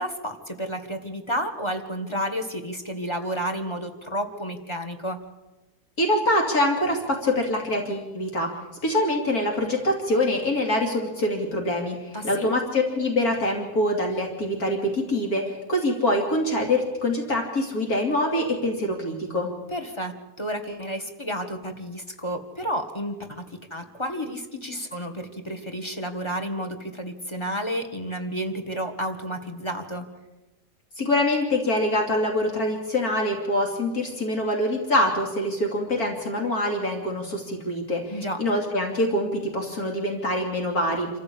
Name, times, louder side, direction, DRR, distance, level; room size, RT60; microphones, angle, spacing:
voice 1, 0.0-5.2 12.1-12.5 19.7-30.1 38.1-38.4, equal, 20° left, 6 dB, 1.8 m, -31 dB
voice 2, 6.0-8.5 8.8-19.5 31.0-41.1, left 1 dB, 70° left, 1 dB, 3.2 m, -25 dB
26.0 x 14.5 x 8.6 m, 1.1 s
omnidirectional pair, 1.6 m